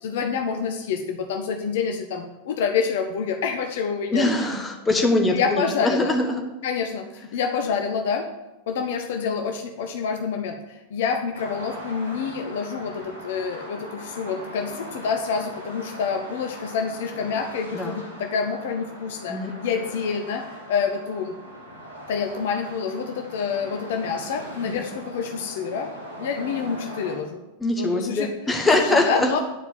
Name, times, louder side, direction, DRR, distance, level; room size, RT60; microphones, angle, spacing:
voice 1, 0.0-4.5 5.3-6.1 6.6-8.2 8.7-21.4 22.1-25.9 26.2-27.4 27.8-28.3 28.7-29.4, left 6 dB, 55° left, 5 dB, 0.8 m, -27 dB
voice 2, 4.1-6.4 17.7-17.9 19.3-19.5 24.6-24.8 27.6-29.3, left 2 dB, 10° left, 2 dB, 1.5 m, -22 dB
sound 1, 11.3-27.2, equal, 90° right, 2.6 m, -40 dB
10.0 x 4.7 x 7.1 m, 0.98 s
figure-of-eight pair, 90°, 0 cm